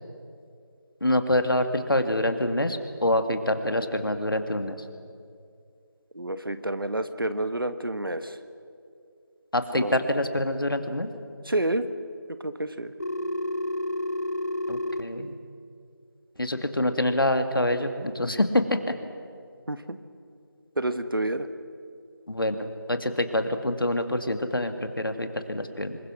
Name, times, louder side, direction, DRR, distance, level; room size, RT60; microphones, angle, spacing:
voice 1, 1.0-4.8 9.5-11.1 14.7-15.3 16.4-19.0 22.3-26.0, left 1 dB, 70° left, 7 dB, 2.3 m, -26 dB
voice 2, 6.1-8.4 9.7-9.9 11.4-11.9 12.4-12.9 19.7-20.0 20.8-21.5, right 1 dB, 70° right, 10 dB, 1.6 m, -29 dB
Telephone, 13.0-15.0, left 1 dB, 45° left, 1.3 m, -29 dB
26.5 x 22.0 x 6.3 m, 2.4 s
figure-of-eight pair, 180°, 12 cm